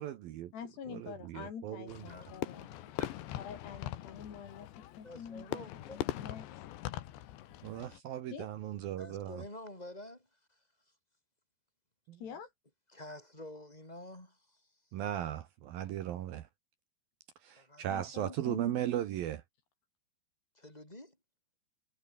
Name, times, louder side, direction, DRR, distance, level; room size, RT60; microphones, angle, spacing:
voice 1, 0.0-0.5 0.9-2.0 7.6-9.5 12.1-12.2 14.9-16.5 17.4-19.4, right 12 dB, 65° right, 2.7 m, -37 dB
voice 2, 0.5-2.7 3.4-4.7 5.0-5.6 5.9-6.5 8.3-8.5 12.2-12.5 17.9-18.8, left 7 dB, 70° left, 5.7 m, -46 dB
Fireworks, 1.9-8.0, left 13 dB, 90° left, 3.7 m, -42 dB
voice 3, 2.1-3.1 5.0-6.0 9.0-10.3 12.9-14.6 17.6-17.9 20.5-21.2, left 1 dB, 10° left, 6.6 m, -49 dB
omnidirectional pair, 5.0 m